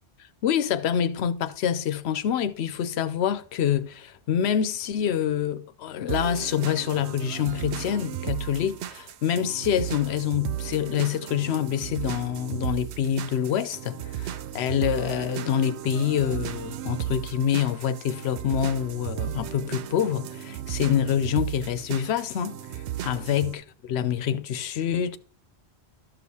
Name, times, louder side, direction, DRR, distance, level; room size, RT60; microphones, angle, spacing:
voice 1, 0.4-25.2, left 9 dB, 80° left, 0.8 m, -26 dB
sound 1, 6.1-23.5, right 12 dB, 85° right, 0.9 m, -35 dB
13.0 x 6.3 x 2.8 m
omnidirectional pair, 1.1 m